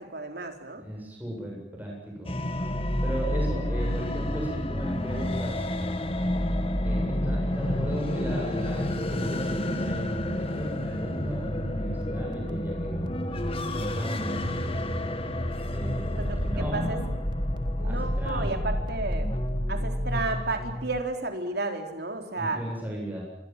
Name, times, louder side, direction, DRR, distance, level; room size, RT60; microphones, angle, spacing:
voice 1, 0.0-0.8 16.1-17.0 17.8-19.3 19.7-22.6, right 2 dB, 55° right, 5 dB, 4.2 m, -32 dB
voice 2, 0.8-2.3 3.0-5.6 6.8-13.1 13.7-14.4 15.7-17.1 17.8-18.7 22.4-23.2, equal, 10° right, -2 dB, 8.0 m, -36 dB
sound 1, 2.2-21.0, left 1 dB, 30° left, 2.3 m, -29 dB
sound 2, 12.0-12.5 12.8-19.5, equal, 25° right, 2.6 m, -49 dB
27.5 x 24.5 x 7.6 m, 0.85 s
head